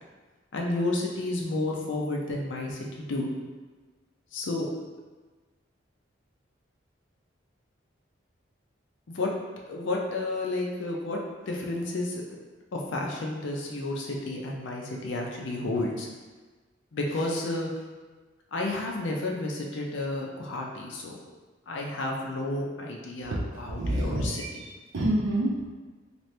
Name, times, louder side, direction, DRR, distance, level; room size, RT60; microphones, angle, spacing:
voice 1, 0.5-3.3 4.3-4.7 9.1-9.3 9.7-11.2 11.5-12.2 12.7-16.1 16.9-17.7 18.5-21.2 21.7-24.4, left 2 dB, 65° left, 0 dB, 0.5 m, -31 dB
voice 2, 23.3-25.6, right 1 dB, 70° right, -3 dB, 0.5 m, -28 dB
2.8 x 2.5 x 3.2 m, 1.3 s
head